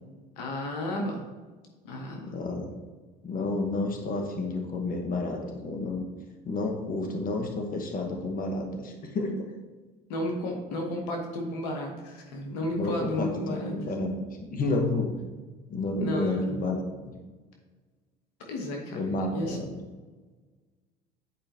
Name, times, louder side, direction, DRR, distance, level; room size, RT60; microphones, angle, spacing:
voice 1, 0.4-1.2 1.8-2.3 10.1-13.8 16.0-16.6 18.5-19.6, left 1 dB, 85° left, 2 dB, 1.3 m, -33 dB
voice 2, 2.3-2.7 3.2-6.0 6.4-9.4 12.8-14.1 14.5-15.1 15.7-17.1 18.9-19.8, left 2 dB, 45° left, 2 dB, 1.5 m, -30 dB
9.8 x 4.9 x 3.0 m, 1.3 s
supercardioid pair, 75°, 21 cm